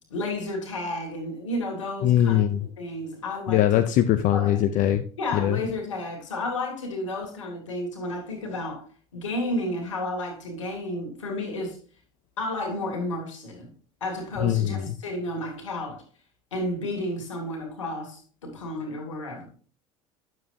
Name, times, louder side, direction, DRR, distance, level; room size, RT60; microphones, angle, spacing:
voice 1, 0.1-2.4 2.8-3.8 4.3-4.8 5.2-8.8 9.1-11.8 12.4-13.7 14.0-16.0 16.5-19.5, left 1 dB, 85° left, 2.5 m, -32 dB
voice 2, 2.0-2.6 3.5-5.0 5.3-5.6 14.4-15.0, left 12 dB, 55° left, 0.7 m, -21 dB
9.4 x 7.4 x 2.8 m
hypercardioid pair, 70°, 16 cm